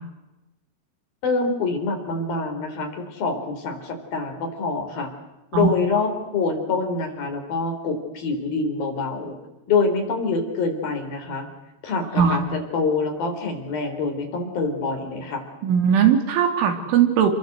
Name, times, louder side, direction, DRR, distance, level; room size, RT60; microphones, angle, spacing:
voice 1, 1.2-5.1 5.5-9.4 9.7-11.5 11.8-15.4, left 4 dB, 50° left, 3 dB, 5.5 m, -25 dB
voice 2, 15.6-17.3, right 8 dB, 90° right, 6 dB, 5.3 m, -19 dB
28.5 x 21.5 x 8.1 m, 1.0 s
omnidirectional pair, 5.3 m